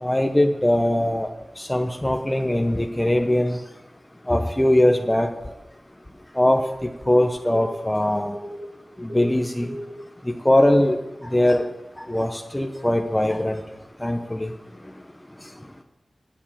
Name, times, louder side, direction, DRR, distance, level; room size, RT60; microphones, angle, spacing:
voice 1, 0.0-1.3 1.6-3.6 4.3-5.3 6.4-8.3 9.0-9.7 10.3-11.0 11.2-11.7 12.0-13.6 14.0-14.5, left 1 dB, 10° left, 4 dB, 0.8 m, -21 dB
sound 1, 7.5-8.8 9.1-10.0 11.5-11.6 12.2-12.4, equal, 45° right, 1.3 m, -36 dB
11.0 x 7.2 x 8.8 m, 0.97 s
wide cardioid pair, 100°, 0 cm